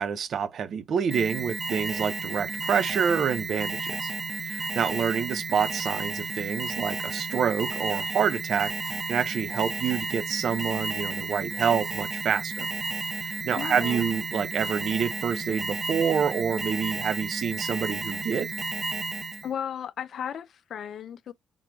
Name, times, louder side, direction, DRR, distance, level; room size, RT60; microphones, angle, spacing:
voice 1, 0.0-4.1 4.5-12.7 13.4-18.5, right 7 dB, 60° right, 0.7 m, -27 dB
Alarm, 1.1-19.5, right 3 dB, 25° right, 0.8 m, -32 dB
voice 2, 13.5-14.1 19.4-21.3, left 9 dB, 65° left, 0.4 m, -35 dB
4.6 x 3.7 x 2.3 m
cardioid pair, 90°, 0 cm